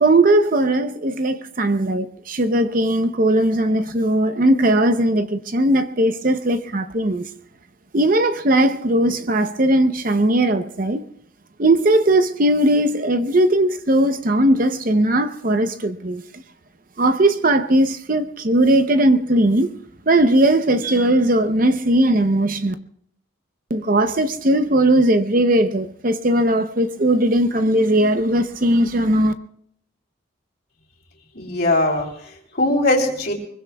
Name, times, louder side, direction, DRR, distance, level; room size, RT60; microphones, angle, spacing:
voice 1, 0.0-7.3 7.9-11.0 11.6-16.2 17.0-19.7 20.1-22.7 23.7-29.3, right 1 dB, 40° right, 0.7 m, -18 dB
voice 2, 31.3-33.3, left 1 dB, 50° left, 3.1 m, -21 dB
24.0 x 22.0 x 2.3 m
head